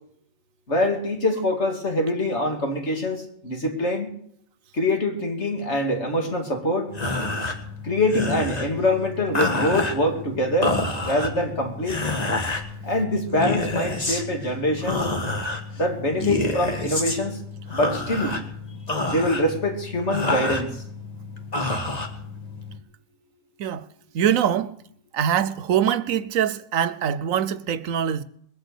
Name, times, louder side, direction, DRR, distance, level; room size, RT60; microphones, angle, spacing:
voice 1, 0.7-4.1 4.7-6.9 7.8-12.0 12.8-15.1 15.8-17.4 17.7-18.4 19.1-20.7, left 1 dB, 60° left, 2.9 m, -24 dB
sound 1, 6.9-22.8, left 2 dB, 30° left, 1.8 m, -29 dB
voice 2, 24.1-24.7 25.1-28.2, right 9 dB, 85° right, 1.2 m, -23 dB
21.0 x 7.9 x 8.3 m
omnidirectional pair, 1.4 m